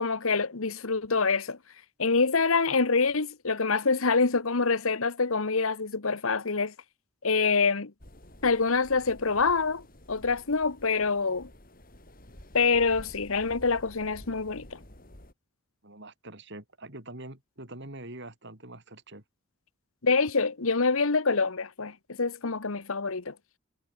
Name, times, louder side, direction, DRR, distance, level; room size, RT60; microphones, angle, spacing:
voice 1, 0.0-1.6 2.0-6.7 7.2-7.9 8.4-9.8 10.1-11.5 12.5-14.8 20.0-23.3, left 4 dB, 75° left, 1.3 m, -26 dB
sound 1, 8.0-15.3, left 1 dB, 40° left, 4.6 m, -50 dB
voice 2, 15.8-19.2, right 1 dB, 55° right, 4.8 m, -44 dB
head